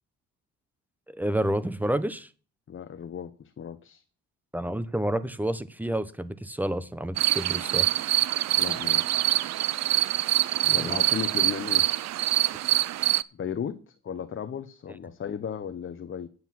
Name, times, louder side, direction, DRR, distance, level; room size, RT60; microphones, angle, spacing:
voice 1, 1.1-2.3 4.5-8.1 10.6-11.2, right 1 dB, 5° right, 1.0 m, -30 dB
voice 2, 2.7-4.0 8.6-9.4 10.7-11.9 13.3-16.3, left 8 dB, 40° left, 0.9 m, -35 dB
sound 1, 7.2-13.2, right 14 dB, 60° right, 0.5 m, -25 dB
9.6 x 7.9 x 6.0 m
cardioid pair, 90°, 30 cm